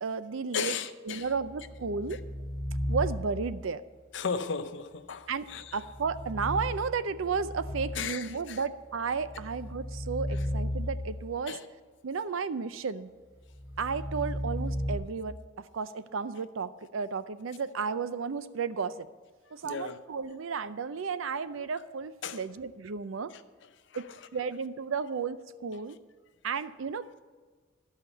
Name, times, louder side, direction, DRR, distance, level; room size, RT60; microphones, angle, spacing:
voice 1, 0.0-0.8 1.1-2.2 2.9-3.8 5.3-11.6 12.0-13.1 13.8-19.1 19.5-23.3 23.9-26.0 26.4-27.1, right 5 dB, 80° right, 0.5 m, -33 dB
voice 2, 0.5-1.3 4.1-5.8 7.9-8.6 11.5-11.6 19.6-20.0 22.2-22.4 23.3-23.4 23.9-24.0, left 6 dB, 65° left, 0.6 m, -35 dB
sound 1, 1.3-3.6 5.7-8.3 8.9-11.4 13.4-15.0, equal, 10° right, 3.5 m, -35 dB
12.0 x 5.6 x 8.1 m
head